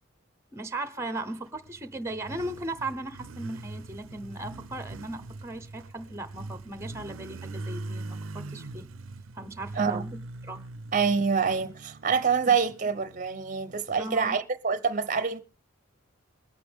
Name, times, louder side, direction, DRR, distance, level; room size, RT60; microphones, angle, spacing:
voice 1, 0.5-8.9 9.3-10.7 12.5-12.6 14.0-14.4, right 2 dB, 15° right, 0.9 m, -37 dB
Motorcycle, 1.4-14.0, right 2 dB, 85° right, 0.6 m, -42 dB
voice 2, 10.9-15.4, right 6 dB, 40° right, 0.8 m, -26 dB
20.5 x 8.4 x 3.6 m
head